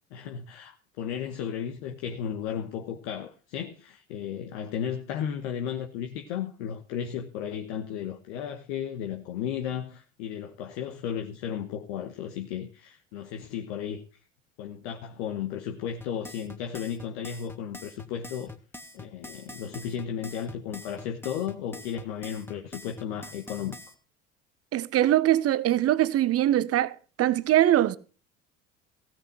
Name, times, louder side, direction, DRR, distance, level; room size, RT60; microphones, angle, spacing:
voice 1, 0.1-14.2 14.6-18.5 18.9-23.8, left 9 dB, 70° left, 1.3 m, -34 dB
sound 1, 16.0-23.9, left 2 dB, 5° left, 1.7 m, -44 dB
voice 2, 24.7-28.0, right 13 dB, 40° right, 0.9 m, -22 dB
16.0 x 6.1 x 7.7 m
hypercardioid pair, 65°, 36 cm